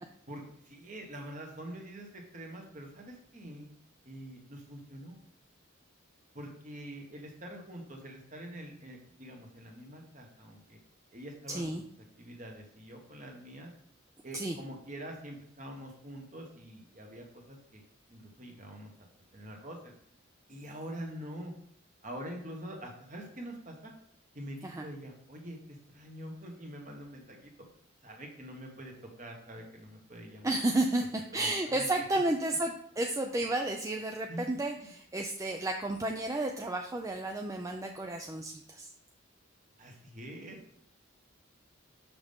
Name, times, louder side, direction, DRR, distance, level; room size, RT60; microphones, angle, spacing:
voice 1, 0.3-3.7 4.0-5.2 6.3-10.8 11.1-11.8 12.2-13.7 14.2-17.8 18.1-18.9 19.3-19.9 20.5-21.5 22.0-23.9 24.3-27.5 28.0-30.6 31.3-31.9 34.3-34.9 39.8-40.8, right 1 dB, 40° right, 1 dB, 1.4 m, -45 dB
voice 2, 11.5-11.8 14.3-14.6 24.6-24.9 30.4-38.9, right 2 dB, 15° right, 3 dB, 0.4 m, -32 dB
6.6 x 6.0 x 3.6 m, 0.68 s
head